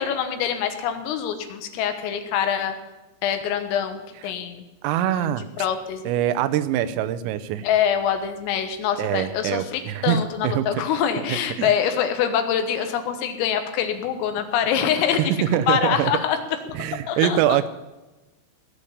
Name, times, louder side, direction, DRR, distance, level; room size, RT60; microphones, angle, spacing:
voice 1, 0.0-2.8 3.2-4.7 5.1-6.1 7.6-15.3 15.7-16.8 17.1-17.6, left 8 dB, 80° left, 7 dB, 4.0 m, -25 dB
voice 2, 4.8-5.4 6.1-7.7 9.0-10.2 10.4-10.7 11.3-11.7 15.2-15.3 15.5-16.1 16.7-17.7, right 11 dB, 85° right, 13 dB, 3.4 m, -23 dB
17.5 x 6.8 x 9.7 m, 1.1 s
omnidirectional pair, 5.9 m